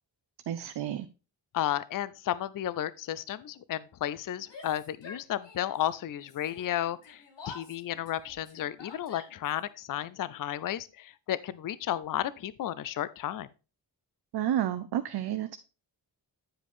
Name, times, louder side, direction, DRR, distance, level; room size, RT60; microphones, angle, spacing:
voice 1, 0.5-1.1 14.3-15.6, right 11 dB, 65° right, 0.6 m, -30 dB
voice 2, 1.5-13.5, left 12 dB, 50° left, 0.5 m, -33 dB
Yell, 4.4-5.9 6.1-9.6, left 4 dB, 75° left, 2.1 m, -49 dB
9.8 x 5.0 x 3.5 m
cardioid pair, 85°, 43 cm